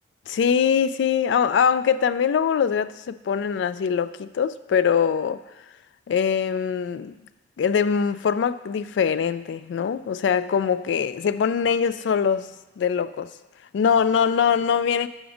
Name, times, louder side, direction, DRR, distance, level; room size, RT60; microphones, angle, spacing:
voice 1, 0.3-5.4 6.1-7.2 7.6-13.3 13.7-15.1, left 7 dB, 85° left, 0.3 m, -22 dB
7.0 x 5.1 x 4.9 m
head